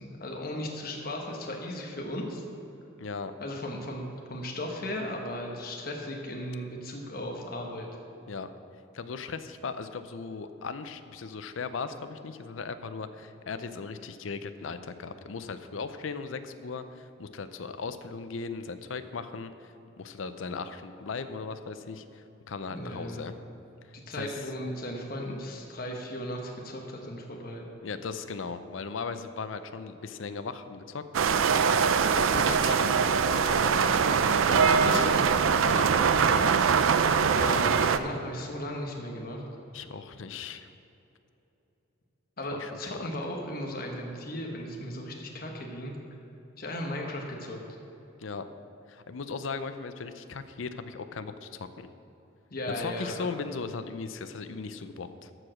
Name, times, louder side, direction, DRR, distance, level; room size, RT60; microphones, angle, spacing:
voice 1, 0.0-2.4 3.4-7.9 22.7-23.3 23.9-27.6 32.3-32.7 33.7-33.8 34.8-35.2 37.2-39.5 42.4-46.0 46.6-47.6 52.5-53.3, left 1 dB, 50° left, 0 dB, 1.1 m, -36 dB
voice 2, 3.0-3.3 8.3-8.5 8.9-23.4 24.1-24.4 27.8-31.0 32.1-33.7 34.1-35.1 35.6-36.7 39.7-40.7 42.5-43.1 48.2-48.5 48.9-51.9 52.8-55.3, left 4 dB, 80° left, 11 dB, 0.6 m, -38 dB
sound 1, 31.1-38.0, right 6 dB, 85° right, 0.4 m, -23 dB
13.5 x 4.9 x 6.3 m, 3.0 s
head